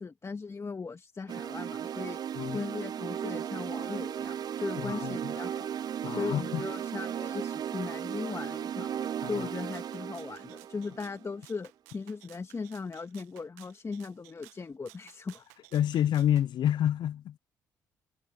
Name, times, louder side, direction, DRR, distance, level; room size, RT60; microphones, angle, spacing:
voice 1, 0.0-2.2 2.5-5.7 6.1-8.9 9.2-15.4, left 4 dB, 35° left, 2.0 m, -38 dB
sound 1, 1.3-11.4, right 9 dB, 55° right, 0.5 m, -36 dB
voice 2, 4.8-5.3 6.0-6.6 9.2-9.5 15.7-17.4, left 11 dB, 65° left, 0.7 m, -28 dB
Rattle (instrument), 9.7-16.5, right 20 dB, 90° right, 1.3 m, -56 dB
hypercardioid pair, 50°, 8 cm